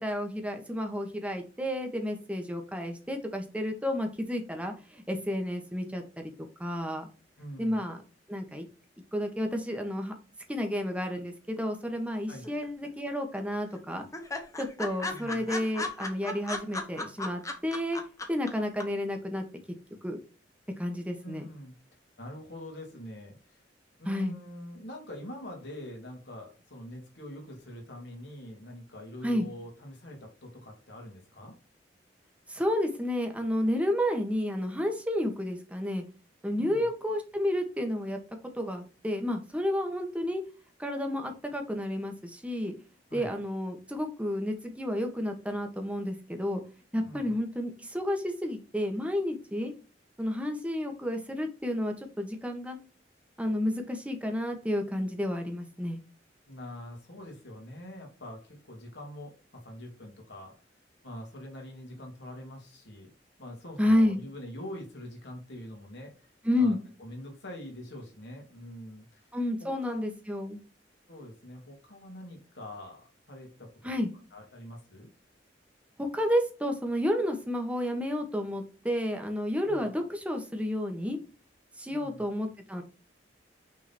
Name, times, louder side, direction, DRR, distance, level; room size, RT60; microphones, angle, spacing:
voice 1, 0.0-6.3 6.6-7.1 7.6-8.0 8.3-8.7 9.1-10.1 10.5-14.1 14.6-18.0 18.3-19.4 20.0-20.2 20.8-21.4 24.0-24.3 29.2-29.5 32.5-36.0 36.4-38.2 38.5-40.4 40.8-42.7 43.1-46.6 46.9-49.7 50.2-52.8 53.4-56.0 63.8-64.2 66.4-66.8 69.3-70.6 73.8-74.1 76.0-81.2 81.8-82.8, left 1 dB, 5° right, 4 dB, 1.3 m, -31 dB
voice 2, 7.4-7.8 12.3-12.5 15.1-15.5 21.2-21.7 22.2-23.6 24.0-31.6 36.6-36.9 43.1-43.3 47.0-47.3 56.5-60.5 61.0-63.1 63.4-66.3 66.6-66.7 67.0-69.3 69.6-70.0 71.1-73.9 74.3-75.1 79.6-79.9 81.9-82.2, left 1 dB, 70° left, 0 dB, 2.7 m, -44 dB
sound 1, 12.4-13.1 13.4-13.5 13.7-13.8 14.1-18.5 18.8-18.9, left 2 dB, 20° left, 1.0 m, -35 dB
6.2 x 3.8 x 4.3 m, 0.33 s
head